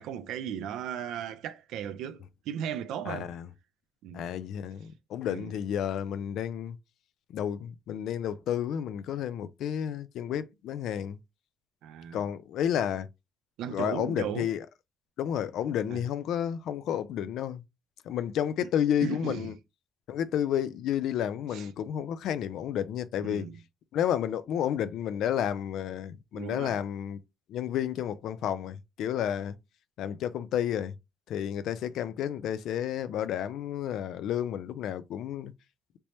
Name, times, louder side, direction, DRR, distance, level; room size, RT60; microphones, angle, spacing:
voice 1, 0.0-3.3 4.0-4.3 5.2-5.6 11.8-12.2 13.6-14.5 15.9-16.0 19.0-19.5 21.5-21.7 23.2-23.6 26.3-26.8, right 9 dB, 90° right, 0.3 m, -36 dB
voice 2, 3.1-3.5 4.1-6.8 7.3-11.2 12.1-13.1 13.7-14.7 15.2-17.6 18.1-19.5 20.1-23.5 23.9-27.2 27.5-29.5 30.0-30.9 31.3-35.5, left 9 dB, 80° left, 0.4 m, -31 dB
3.3 x 3.0 x 2.7 m
cardioid pair, 90°, 0 cm